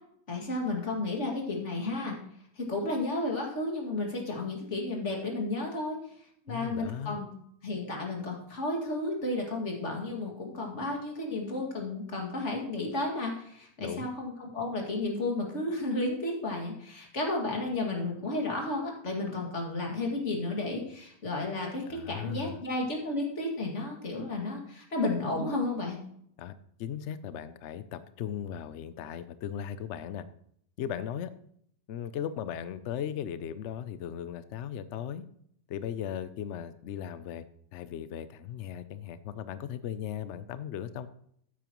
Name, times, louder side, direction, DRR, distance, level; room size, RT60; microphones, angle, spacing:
voice 1, 0.3-2.2 2.6-6.0 6.5-7.3 7.6-26.0, left 2 dB, 40° left, 0 dB, 2.6 m, -32 dB
voice 2, 6.5-7.2 13.8-14.1 21.9-22.6 26.4-26.5 26.8-30.2 30.8-31.3 31.9-35.3 35.7-37.4 37.7-41.1, left 9 dB, 80° left, 13 dB, 0.6 m, -37 dB
14.0 x 8.9 x 3.0 m, 0.68 s
omnidirectional pair, 1.9 m